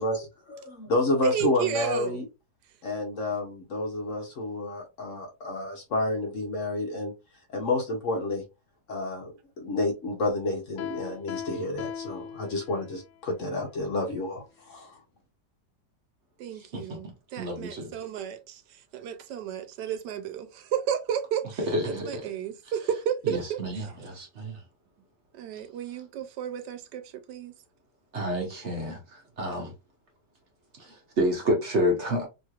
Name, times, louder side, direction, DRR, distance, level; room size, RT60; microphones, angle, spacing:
voice 1, 0.0-2.2 2.8-7.1 7.5-8.4 8.9-15.0, left 2 dB, 55° left, 0.9 m, -30 dB
voice 2, 1.2-2.2 16.4-23.9 25.3-27.5, right 9 dB, 80° right, 1.2 m, -33 dB
Piano, 10.8-13.1, left 7 dB, 80° left, 0.7 m, -38 dB
voice 3, 17.4-17.9 21.7-22.2 23.3-24.6 28.1-29.0 29.4-29.7 30.8-32.3, equal, 50° right, 0.9 m, -29 dB
3.1 x 3.0 x 2.4 m
omnidirectional pair, 1.9 m